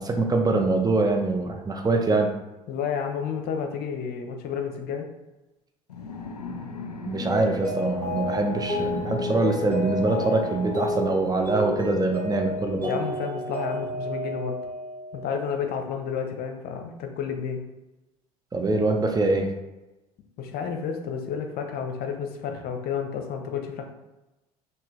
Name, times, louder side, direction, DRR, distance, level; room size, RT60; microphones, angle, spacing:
voice 1, 0.0-2.3 7.1-12.9 18.5-19.5, right 3 dB, 20° right, 3 dB, 0.9 m, -24 dB
voice 2, 2.7-5.1 12.8-14.6 15.1-17.6 20.4-23.9, left 7 dB, 50° left, 4 dB, 0.8 m, -31 dB
sound 1, 5.9-14.1, left 4 dB, 90° left, 0.5 m, -39 dB
Mallet percussion, 7.3-15.5, left 1 dB, 10° left, 1.5 m, -31 dB
5.8 x 2.8 x 3.2 m, 1.0 s
figure-of-eight pair, 65°, 20 cm